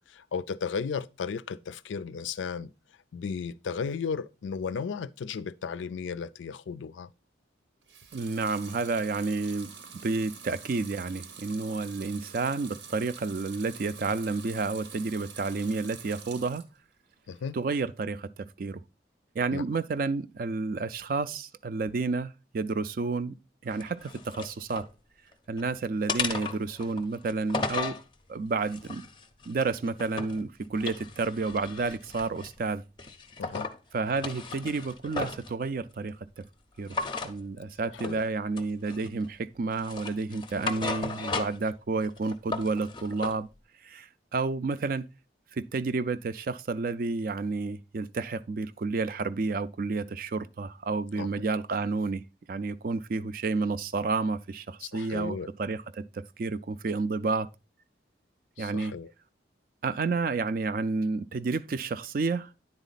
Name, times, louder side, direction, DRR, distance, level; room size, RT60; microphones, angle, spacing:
voice 1, 0.1-2.7 3.1-7.1 17.3-17.5 19.5-19.6 33.4-33.7 38.0-38.2 51.2-51.3 54.8-55.5 58.6-59.1, left 6 dB, 85° left, 0.4 m, -34 dB
Water tap faucet / Sink (filling or washing) / Liquid, 7.8-16.8 17.2-17.9, right 6 dB, 80° right, 0.9 m, -47 dB
voice 2, 8.1-9.7 10.0-16.6 17.5-18.3 18.6-18.8 19.4-23.3 23.6-24.9 25.5-28.0 28.3-29.1 29.5-32.8 33.9-36.4 36.8-37.0 37.2-43.5 43.8-45.1 45.5-52.2 52.5-57.5 58.6-58.9 59.8-62.5, right 3 dB, 50° right, 0.4 m, -30 dB
sound 1, 23.7-24.9 25.3-25.7 26.1-28.0 28.6-30.4 30.7-32.6 33.0-33.8 34.1-35.5 36.9-37.3 38.0-38.2 38.6-39.3 39.7-41.7 42.0-43.4, left 4 dB, 25° left, 0.5 m, -35 dB
9.8 x 4.1 x 3.9 m
head